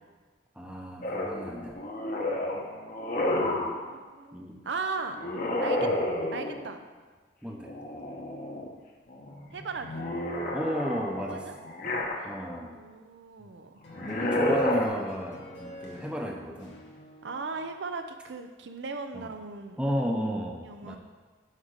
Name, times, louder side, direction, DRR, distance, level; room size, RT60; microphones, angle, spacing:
voice 1, 0.6-1.7 4.3-4.6 5.8-6.0 7.4-7.7 10.5-11.5 12.2-12.8 14.0-16.8 19.1-19.3 19.8-21.0, equal, 5° right, 0 dB, 0.7 m, -33 dB
sound 1, 1.0-3.8 5.1-6.7 7.6-8.7 9.1-12.6 13.9-14.9, left 1 dB, 45° left, 1.0 m, -30 dB
voice 2, 3.9-5.2 5.6-5.9 6.3-6.8 9.5-10.1 11.3-11.6 12.2-12.3 12.6-13.8 17.2-19.8 20.6-21.0, right 4 dB, 70° right, 7 dB, 0.5 m, -37 dB
sound 2, 13.8-18.0, left 1 dB, 75° left, 1.4 m, -48 dB
6.5 x 5.0 x 6.5 m, 1.4 s
head